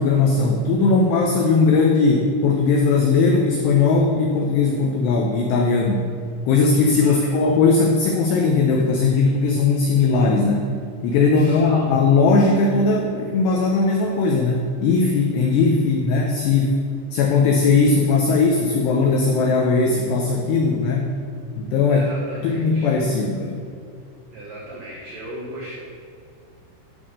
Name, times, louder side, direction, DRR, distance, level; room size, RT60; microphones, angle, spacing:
voice 1, 0.0-6.1 6.5-10.7 11.0-16.8 17.1-21.1 21.6-22.1 22.4-23.6, left 4 dB, 90° left, 1 dB, 2.4 m, -18 dB
voice 2, 7.0-7.4 11.3-11.9 21.9-22.9 24.3-25.8, right 1 dB, 80° right, -4 dB, 1.9 m, -36 dB
11.5 x 5.5 x 6.6 m, 2.3 s
omnidirectional pair, 5.9 m